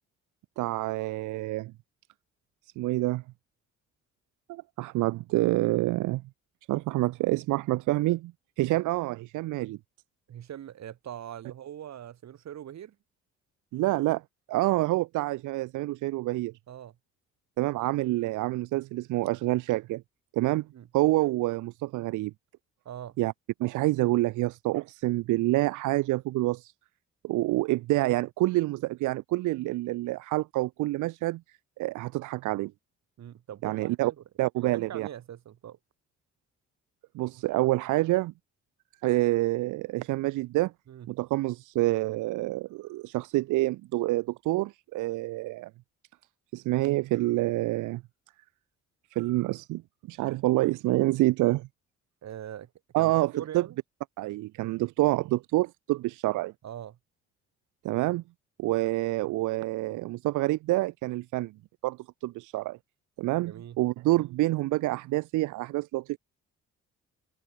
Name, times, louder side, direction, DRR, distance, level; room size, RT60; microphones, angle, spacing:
voice 1, 0.6-1.7 2.8-3.2 4.5-6.2 6.7-8.3 8.6-9.8 13.7-14.2 14.5-16.5 17.6-20.0 20.3-20.7 20.9-22.3 23.2-23.3 23.6-26.7 27.2-31.4 31.8-32.7 33.6-34.1 34.4-35.1 37.1-38.3 39.0-40.7 41.1-45.7 46.5-48.0 49.1-49.8 50.1-51.7 52.9-53.7 54.2-56.5 57.8-58.2 58.6-61.5 61.8-62.8 63.2-66.2, right 18 dB, 85° right, 0.6 m, -27 dB
voice 2, 10.3-13.0 16.7-17.0 20.7-20.9 22.8-23.2 33.2-34.2 34.6-35.8 40.9-41.1 52.2-52.7 53.0-53.8 56.6-57.0 63.4-63.8, right 10 dB, 65° right, 2.5 m, -42 dB
open air
cardioid pair, 90°, 30 cm